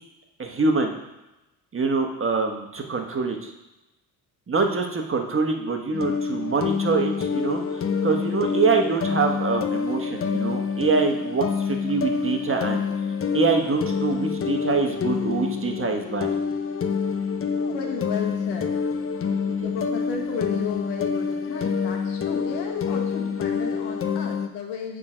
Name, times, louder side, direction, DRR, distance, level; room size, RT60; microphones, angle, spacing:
voice 1, 0.4-0.9 1.7-3.5 4.5-12.8 13.3-16.3 19.5-19.7, right 4 dB, 30° right, 3 dB, 1.3 m, -25 dB
sound 1, 5.9-24.5, left 6 dB, 35° left, 0.7 m, -27 dB
voice 2, 17.6-18.7 19.6-25.0, left 6 dB, 90° left, 2 dB, 1.3 m, -33 dB
8.4 x 3.9 x 5.0 m, 0.97 s
supercardioid pair, 65°, 41 cm